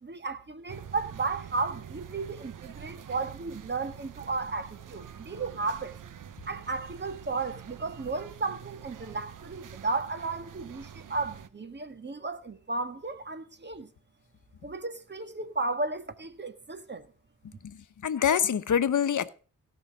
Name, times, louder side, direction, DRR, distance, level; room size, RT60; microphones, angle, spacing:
voice 1, 0.0-6.0 6.5-13.9 14.6-17.1, right 3 dB, 35° right, 1.6 m, -34 dB
sound 1, 0.7-11.5, right 8 dB, 70° right, 1.0 m, -46 dB
voice 2, 17.6-19.3, left 8 dB, 65° left, 1.0 m, -26 dB
17.0 x 5.7 x 6.7 m
cardioid pair, 75°, 33 cm